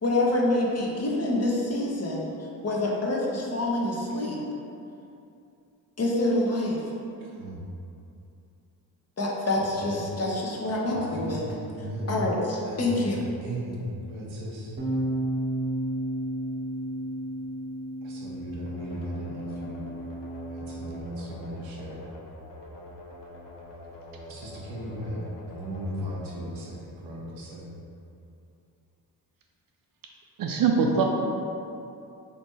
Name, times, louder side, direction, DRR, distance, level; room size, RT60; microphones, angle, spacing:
voice 1, 0.0-2.2 2.6-4.4 6.0-6.8 9.2-11.4 12.1-13.2, left 2 dB, 35° left, -3 dB, 0.8 m, -26 dB
voice 2, 7.2-7.6 9.8-10.0 10.9-11.4 11.7-12.1 12.6-13.1 13.4-13.8 14.1-14.8 18.0-19.9 20.5-22.0 24.3-27.7, right 1 dB, 80° right, -4 dB, 0.8 m, -37 dB
Bass guitar, 14.8-21.0, right 1 dB, 25° right, 0.8 m, -33 dB
sound 1, 18.7-27.3, left 1 dB, 65° left, 0.7 m, -45 dB
voice 3, 30.4-31.0, right 5 dB, 50° right, 1 dB, 0.4 m, -22 dB
3.3 x 3.0 x 2.8 m, 2.6 s
supercardioid pair, 45°, 46 cm